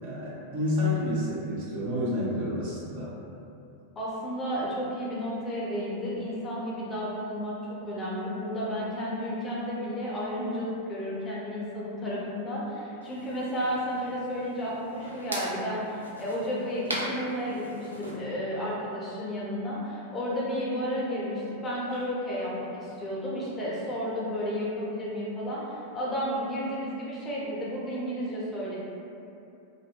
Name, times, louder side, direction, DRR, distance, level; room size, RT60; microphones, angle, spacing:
voice 1, 0.0-3.1, left 1 dB, 50° right, -8 dB, 0.7 m, -29 dB
voice 2, 4.0-7.6 7.8-28.8, equal, 20° left, -6 dB, 0.5 m, -32 dB
sound 1, 13.0-18.2, right 1 dB, 80° right, 0.3 m, -40 dB
2.7 x 2.0 x 2.2 m, 2.7 s
figure-of-eight pair, 90°, 0 cm